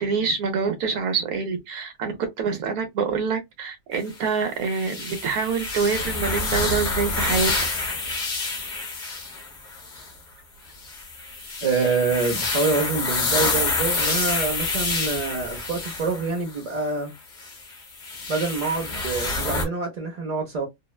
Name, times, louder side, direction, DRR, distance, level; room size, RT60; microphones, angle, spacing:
voice 1, 0.0-7.5, right 5 dB, 85° right, 1.2 m, -26 dB
sound 1, 4.7-10.1 10.8-16.6 17.4-19.6, left 3 dB, 40° left, 0.9 m, -27 dB
voice 2, 11.6-17.1 18.3-20.7, right 4 dB, 55° right, 0.4 m, -26 dB
2.8 x 2.1 x 2.2 m
omnidirectional pair, 1.5 m